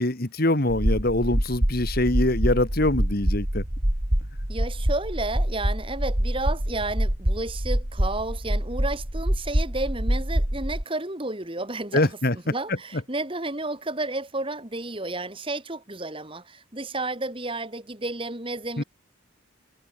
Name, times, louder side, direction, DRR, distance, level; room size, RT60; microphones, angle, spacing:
voice 1, 0.0-3.6 11.9-12.4 18.8-18.9, left 1 dB, 45° left, 1.9 m, -23 dB
sound 1, 0.7-10.8, equal, 40° right, 3.3 m, -25 dB
voice 2, 4.5-18.8, right 2 dB, 25° right, 2.5 m, -32 dB
head